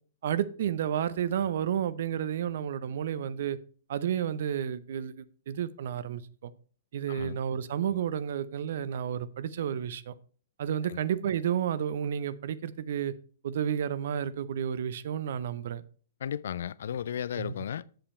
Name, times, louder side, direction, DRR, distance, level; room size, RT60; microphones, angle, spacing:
voice 1, 0.2-3.6 3.9-6.5 6.9-10.1 10.6-13.1 13.4-15.8 17.4-17.7, right 9 dB, 65° right, 0.6 m, -31 dB
voice 2, 7.1-7.4 10.8-11.0 16.2-17.9, left 9 dB, 70° left, 0.3 m, -35 dB
7.7 x 6.9 x 4.3 m
hypercardioid pair, 125°, 0 cm